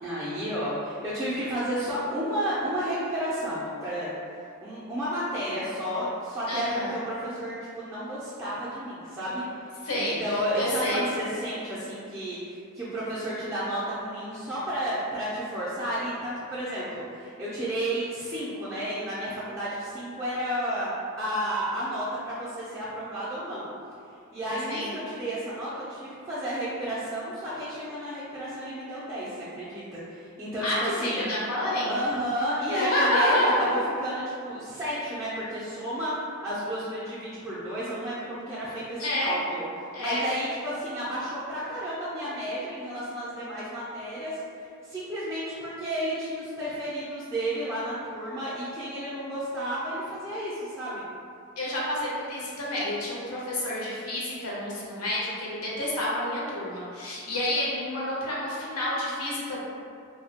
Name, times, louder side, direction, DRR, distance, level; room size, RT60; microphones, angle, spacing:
voice 1, 0.0-4.1 4.6-9.4 9.9-23.7 24.3-31.3 31.9-51.0, equal, 15° right, -12 dB, 0.3 m, -32 dB
voice 2, 6.5-7.0 9.8-11.0 24.7-24.9 30.6-32.0 32.7-33.8 39.0-39.3 39.9-40.2 51.6-59.6, left 1 dB, 85° left, -5 dB, 0.7 m, -28 dB
2.6 x 2.1 x 2.7 m, 2.4 s
head